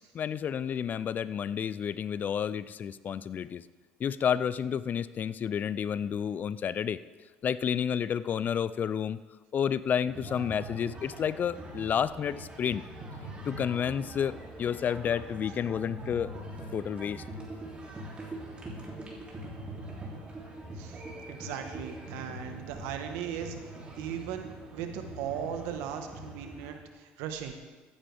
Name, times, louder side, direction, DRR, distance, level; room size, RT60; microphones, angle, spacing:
voice 1, 0.1-3.6 4.0-7.0 7.4-9.2 9.5-12.8 13.4-16.3 16.7-17.2, left 8 dB, 40° left, 17 dB, 0.4 m, -30 dB
sound 1, 10.1-26.8, right 1 dB, 25° right, 3.1 m, -43 dB
voice 2, 21.3-23.6 24.0-24.5 24.7-27.6, right 9 dB, 75° right, 6 dB, 1.3 m, -37 dB
15.0 x 9.8 x 3.5 m, 1.3 s
supercardioid pair, 80°, 4 cm